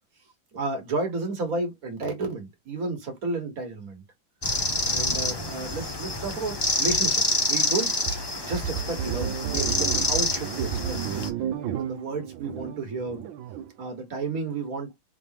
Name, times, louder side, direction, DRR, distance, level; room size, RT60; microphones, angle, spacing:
voice 1, 0.5-4.0 4.8-7.9 8.4-11.1 11.6-13.2 13.8-14.9, right 3 dB, 50° right, 1.9 m, -32 dB
sound 1, 4.4-11.3, left 2 dB, 40° left, 0.3 m, -27 dB
sound 2, 8.1-13.7, right 8 dB, 85° right, 1.4 m, -32 dB
5.0 x 3.5 x 2.9 m
omnidirectional pair, 2.1 m